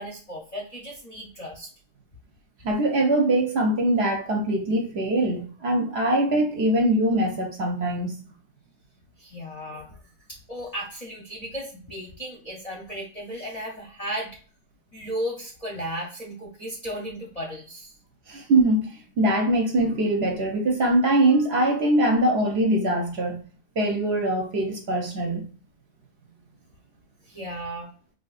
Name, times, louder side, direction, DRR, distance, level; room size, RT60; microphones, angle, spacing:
voice 1, 0.0-1.7 9.2-10.0 10.3-14.3 14.9-17.9 27.3-27.9, equal, 40° left, 0.6 m, -35 dB
voice 2, 2.6-8.2 18.3-23.4 23.8-25.5, right 1 dB, 60° right, 0.8 m, -22 dB
3.8 x 2.6 x 2.3 m
omnidirectional pair, 1.4 m